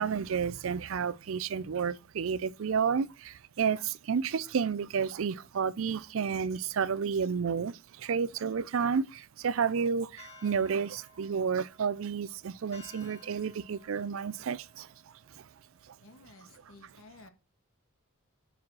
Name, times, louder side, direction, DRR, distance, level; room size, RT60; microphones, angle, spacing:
voice 1, 0.0-14.9 15.4-15.5, right 6 dB, 65° right, 0.4 m, -31 dB
sound 1, 10.2-16.6, left 2 dB, 30° left, 1.9 m, -57 dB
voice 2, 16.0-17.3, left 2 dB, 70° left, 1.5 m, -54 dB
5.6 x 5.1 x 6.1 m
head